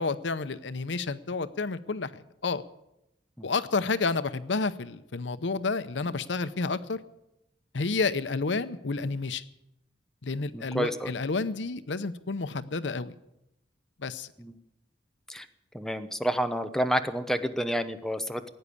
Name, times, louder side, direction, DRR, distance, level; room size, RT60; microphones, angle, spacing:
voice 1, 0.0-2.6 3.4-7.0 7.7-9.4 10.2-13.1 14.0-14.3, left 4 dB, 90° left, 14 dB, 0.8 m, -30 dB
voice 2, 10.5-11.1 14.4-14.5 15.3-15.5 15.7-18.5, equal, 5° left, 7 dB, 0.8 m, -29 dB
16.5 x 9.5 x 8.6 m, 0.84 s
head